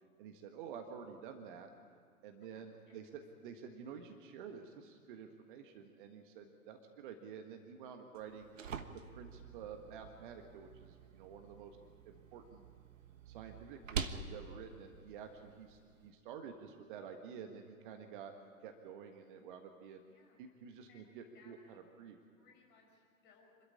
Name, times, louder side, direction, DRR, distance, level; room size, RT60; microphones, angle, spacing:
voice 1, 0.2-1.7 2.2-8.5 8.9-11.8 12.0-12.7 13.2-20.0 20.4-22.2, right 7 dB, 35° right, 5 dB, 1.6 m, -50 dB
voice 2, 2.5-3.0 11.7-11.9 20.1-20.5 20.9-21.8 22.3-23.6, left 4 dB, 25° left, 1 dB, 5.6 m, -67 dB
sound 1, 8.1-16.1, right 6 dB, 60° right, 1.4 m, -47 dB
26.0 x 13.0 x 9.7 m, 2.4 s
figure-of-eight pair, 120°, 43 cm